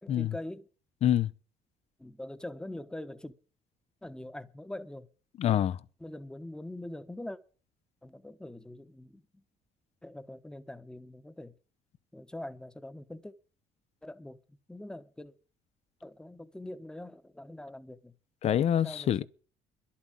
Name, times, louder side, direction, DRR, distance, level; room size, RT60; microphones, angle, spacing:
voice 1, 0.0-0.7 2.0-3.3 4.0-5.1 6.0-7.4 8.0-9.4 10.0-11.6 12.1-13.3 14.0-15.3 16.0-18.1 18.8-19.3, left 1 dB, 5° left, 1.1 m, -43 dB
voice 2, 5.4-5.8 18.4-19.3, left 10 dB, 50° left, 0.8 m, -26 dB
11.5 x 8.5 x 9.2 m
cardioid pair, 110°, 13 cm